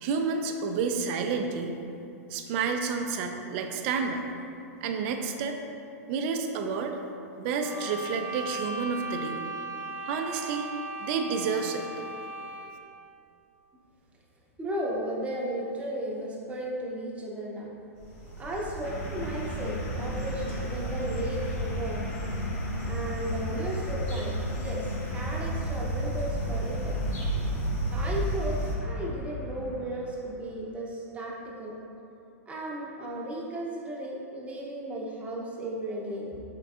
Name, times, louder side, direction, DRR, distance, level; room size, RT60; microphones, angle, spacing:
voice 1, 0.0-1.8 2.3-4.2 4.8-5.6 6.1-7.0 7.4-9.4 10.1-10.7 11.0-11.9, right 5 dB, 50° right, 5 dB, 0.3 m, -30 dB
sound 1, 7.6-12.9, right 2 dB, 55° left, 1.4 m, -37 dB
voice 2, 14.6-17.7 18.4-22.0 22.9-24.8 25.1-27.0 27.9-31.7 32.5-36.4, right 1 dB, 15° right, -3 dB, 0.7 m, -35 dB
sound 2, 18.0-28.7, equal, 30° left, 1.2 m, -33 dB
sound 3, 18.8-30.2, equal, 70° left, 0.7 m, -38 dB
3.9 x 3.6 x 2.4 m, 2.6 s
hypercardioid pair, 115°, 8 cm